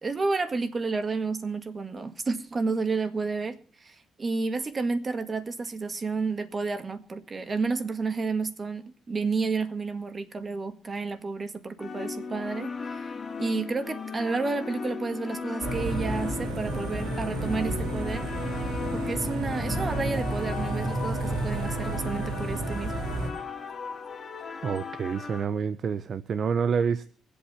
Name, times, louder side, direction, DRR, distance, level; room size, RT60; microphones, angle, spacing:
voice 1, 0.0-13.1 13.4-18.3 18.9-22.9, right 4 dB, 35° right, 1.8 m, -31 dB
sound 1, 11.8-25.5, left 5 dB, 35° left, 2.4 m, -37 dB
sound 2, 15.6-23.3, right 2 dB, 85° right, 3.5 m, -31 dB
voice 2, 24.6-27.1, right 6 dB, 55° right, 0.6 m, -28 dB
24.5 x 8.5 x 4.3 m
cardioid pair, 90°, 0 cm